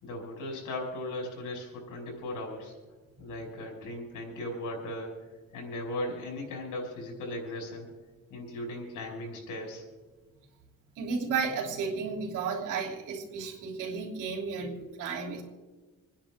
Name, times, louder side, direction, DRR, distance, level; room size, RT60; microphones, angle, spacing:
voice 1, 0.0-2.7 3.2-5.2 5.5-7.9 8.3-9.8, left 1 dB, 85° left, 0 dB, 5.2 m, -37 dB
voice 2, 11.0-15.4, right 5 dB, 85° right, 0 dB, 3.3 m, -33 dB
27.5 x 10.0 x 3.7 m, 1.3 s
cardioid pair, 90°, 30 cm